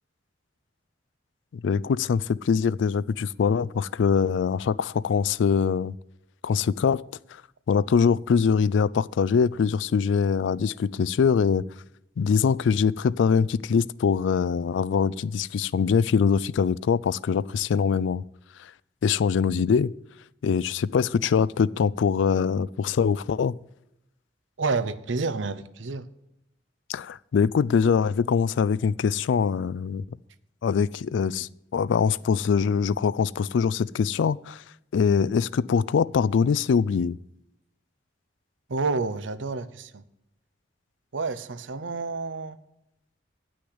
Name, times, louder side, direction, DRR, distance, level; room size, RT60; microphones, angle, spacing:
voice 1, 1.5-5.9 6.4-7.0 7.7-11.6 12.2-18.2 19.0-19.9 20.4-23.6 26.9-30.0 30.6-34.6 34.9-37.2, left 6 dB, 75° left, 0.3 m, -23 dB
voice 2, 24.6-26.1 38.7-40.0 41.1-42.6, right 4 dB, 85° right, 0.7 m, -29 dB
10.0 x 6.3 x 7.9 m
head